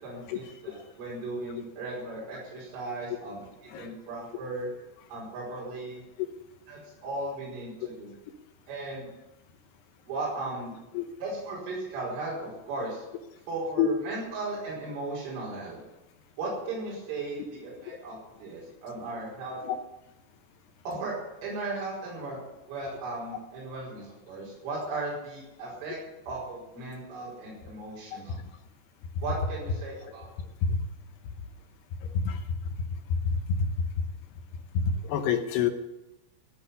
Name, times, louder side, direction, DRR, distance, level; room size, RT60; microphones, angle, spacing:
voice 1, 0.0-4.7 5.1-6.0 6.7-8.2 8.7-9.1 10.1-10.7 11.2-13.0 13.5-15.8 16.4-19.6 20.9-21.1 21.4-26.0 26.3-28.4 29.2-30.3, right 2 dB, 70° right, -5 dB, 7.5 m, -36 dB
voice 2, 32.1-32.5 33.1-33.7 34.7-35.7, left 6 dB, 75° left, 7 dB, 2.6 m, -27 dB
15.0 x 8.3 x 9.6 m, 0.94 s
omnidirectional pair, 5.8 m